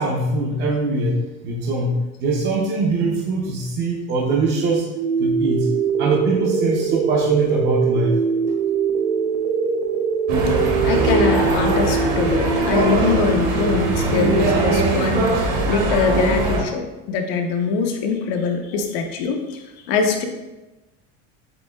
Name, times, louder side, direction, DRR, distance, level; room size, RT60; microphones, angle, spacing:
voice 1, 0.0-4.9 5.2-5.7 6.0-8.2, right 2 dB, 35° right, -3 dB, 0.6 m, -22 dB
sound 1, 4.9-14.9, right 6 dB, 70° right, 0.7 m, -23 dB
sound 2, 10.3-16.6, right 2 dB, 50° right, 1.0 m, -21 dB
voice 2, 10.8-20.3, left 5 dB, 70° left, 4 dB, 0.8 m, -23 dB
7.6 x 2.7 x 2.2 m, 1.1 s
cardioid pair, 160°, 32 cm